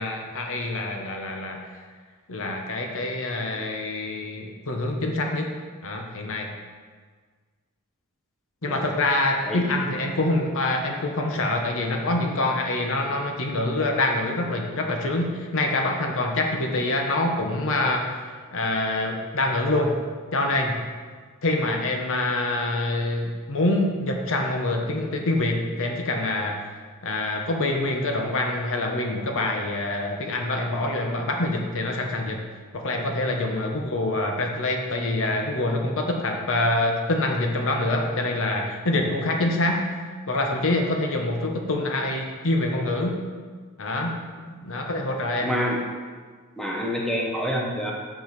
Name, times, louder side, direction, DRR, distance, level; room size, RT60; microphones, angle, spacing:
voice 1, 0.0-1.7 2.3-5.5 5.8-6.5 8.6-18.1 18.5-19.9 20.3-20.8 21.4-26.6 27.0-32.4 32.7-39.9 40.3-43.2 43.8-44.2 44.6-45.5, left 2 dB, 65° left, 2 dB, 1.1 m, -25 dB
voice 2, 45.4-45.8 46.6-47.9, equal, ahead, -2 dB, 1.1 m, -27 dB
7.2 x 6.0 x 5.9 m, 1.5 s
head